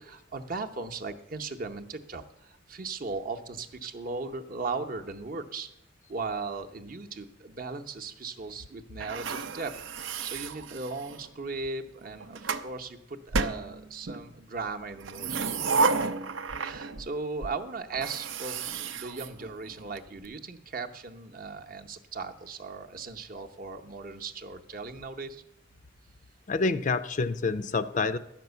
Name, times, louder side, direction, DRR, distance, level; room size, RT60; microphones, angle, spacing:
voice 1, 0.0-5.7 6.1-9.7 10.2-15.7 16.0-16.1 16.6-25.4, right 4 dB, 45° right, 5 dB, 0.7 m, -37 dB
sound 1, 9.0-11.3 12.0-12.7 13.3-14.2 15.0-17.1 17.4-17.5 17.9-20.0, right 4 dB, 80° right, 0.6 m, -31 dB
voice 2, 26.5-28.2, left 4 dB, 40° left, 13 dB, 0.4 m, -27 dB
11.0 x 6.0 x 8.0 m, 0.85 s
head